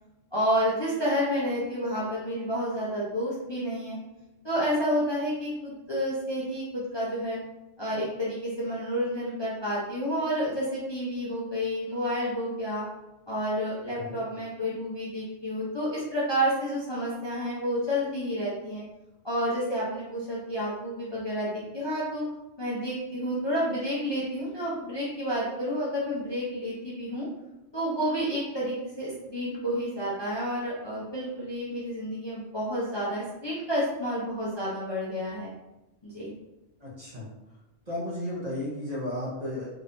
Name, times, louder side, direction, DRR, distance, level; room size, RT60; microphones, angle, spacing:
voice 1, 0.3-4.0 4.4-7.4 7.8-12.8 13.3-18.8 19.2-22.2 22.6-27.3 27.7-35.5 36.0-36.3, equal, 25° left, -7 dB, 0.7 m, -30 dB
voice 2, 36.8-37.3 37.9-39.7, left 1 dB, 35° right, -7 dB, 1.1 m, -33 dB
3.7 x 3.1 x 2.6 m, 0.94 s
omnidirectional pair, 1.2 m